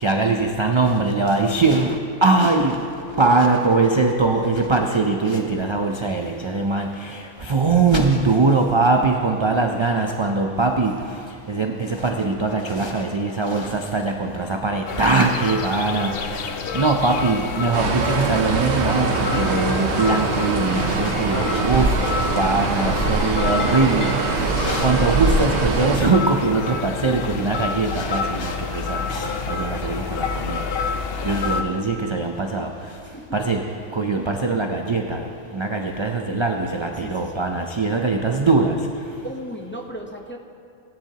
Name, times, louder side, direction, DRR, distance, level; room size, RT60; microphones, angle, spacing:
voice 1, 0.0-2.8 3.2-11.0 11.5-16.1 16.7-30.6 31.2-32.7 33.3-33.6 33.9-35.2 35.5-38.8, right 3 dB, 45° right, 3 dB, 0.4 m, -21 dB
voice 2, 2.7-3.2 8.4-9.6 22.8-23.4 33.0-33.3 37.0-37.4 39.2-40.4, equal, 15° left, 2 dB, 0.5 m, -38 dB
sound 1, 14.9-31.6, left 5 dB, 60° left, 0.8 m, -29 dB
sound 2, 17.7-26.0, right 4 dB, 65° right, 1.0 m, -23 dB
18.0 x 10.0 x 2.8 m, 2.4 s
omnidirectional pair, 1.3 m